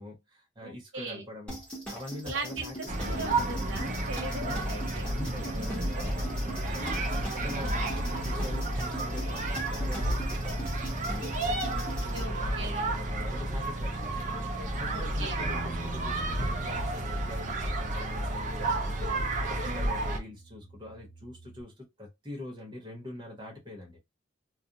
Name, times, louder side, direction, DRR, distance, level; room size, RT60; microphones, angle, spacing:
voice 1, 0.0-2.7 3.0-3.5 4.3-4.7 5.0-11.4 11.9-14.2 14.5-24.0, left 1 dB, 20° right, 1.0 m, -44 dB
voice 2, 0.6-1.3 2.2-5.1 5.4-5.9 11.6-11.9 12.1-12.9 14.9-15.4 19.6-19.9, right 2 dB, 85° right, 0.9 m, -39 dB
sound 1, 1.5-12.2, right 1 dB, 5° left, 1.1 m, -41 dB
sound 2, 2.9-20.2, right 1 dB, 40° right, 0.6 m, -31 dB
Bass guitar, 15.4-21.6, right 3 dB, 55° left, 1.0 m, -45 dB
2.4 x 2.3 x 2.8 m
head